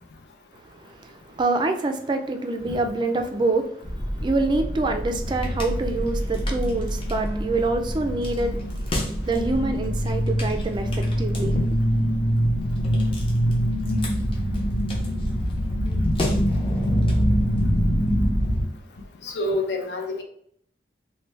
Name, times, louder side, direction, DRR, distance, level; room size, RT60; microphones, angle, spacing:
voice 1, 0.6-11.6, right 3 dB, 25° right, 0.3 m, -26 dB
sound 1, 3.8-18.6, equal, 30° left, 0.6 m, -24 dB
voice 2, 19.2-20.2, left 2 dB, 70° left, 0.6 m, -27 dB
3.2 x 2.1 x 3.2 m
head